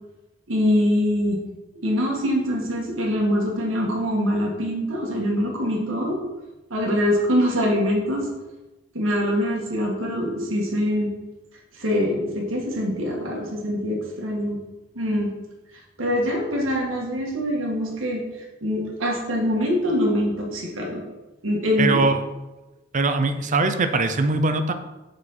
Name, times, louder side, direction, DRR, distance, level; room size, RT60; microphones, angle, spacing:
voice 1, 0.5-1.4 1.7-6.2 6.7-8.3 8.9-11.1 11.8-14.6 14.9-15.3 16.0-18.2 18.6-21.0 21.4-22.0, equal, 80° right, 0 dB, 1.7 m, -24 dB
voice 2, 21.8-22.2 22.9-24.7, right 3 dB, 40° right, 8 dB, 0.6 m, -21 dB
6.8 x 4.8 x 4.3 m, 1.1 s
head